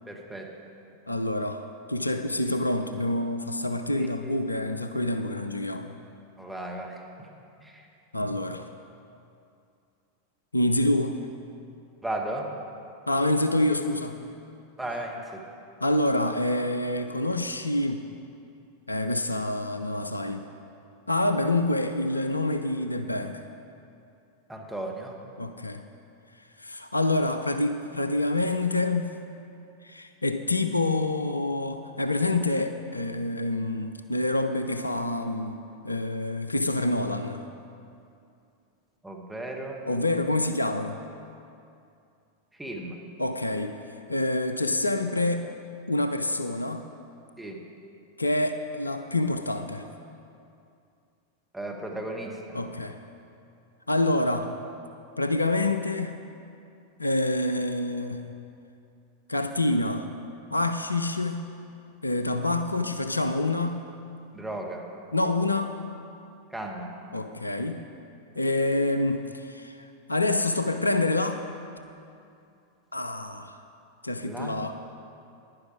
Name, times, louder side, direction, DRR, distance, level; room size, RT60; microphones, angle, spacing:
voice 1, 0.1-0.5 4.0-4.3 6.4-7.3 7.6-7.7 12.0-12.5 14.8-15.4 24.5-25.1 39.0-39.8 42.6-43.0 47.4-47.6 51.5-52.4 64.3-64.8 66.5-66.9 74.2-74.5, right 1 dB, 5° right, -1 dB, 1.4 m, -35 dB
voice 2, 1.1-6.0 8.1-8.7 10.5-11.2 13.1-14.3 15.8-18.0 18.9-20.4 21.1-23.4 25.4-25.8 26.6-29.2 29.8-35.6 35.8-37.4 39.9-41.0 43.2-43.8 44.1-45.6 45.9-46.8 48.2-49.9 52.5-53.0 53.9-54.5 55.2-56.2 57.0-58.3 59.3-60.1 60.5-61.5 62.0-63.9 65.1-65.8 67.1-67.9 68.4-69.8 70.1-71.4 72.9-73.5 74.0-74.8, left 2 dB, 80° left, 8 dB, 0.4 m, -27 dB
10.5 x 10.5 x 4.8 m, 2.6 s
figure-of-eight pair, 90°, 0 cm